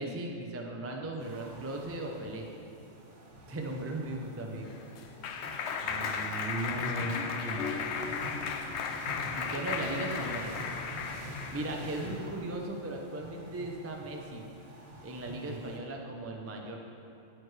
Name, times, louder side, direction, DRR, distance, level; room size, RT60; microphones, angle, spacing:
voice 1, 0.0-2.4 3.5-4.7 9.3-10.5 11.5-14.4 15.0-16.8, right 2 dB, 20° right, 1 dB, 0.5 m, -37 dB
sound 1, 1.2-15.8, equal, 70° right, 1.6 m, -46 dB
Clapping, 4.4-11.7, left 5 dB, 70° left, 0.8 m, -35 dB
voice 2, 5.8-7.1 7.4-7.7 12.0-12.2 15.4-15.6, right 2 dB, 55° right, 1 dB, 0.9 m, -38 dB
9.1 x 9.0 x 3.3 m, 2.7 s
omnidirectional pair, 1.3 m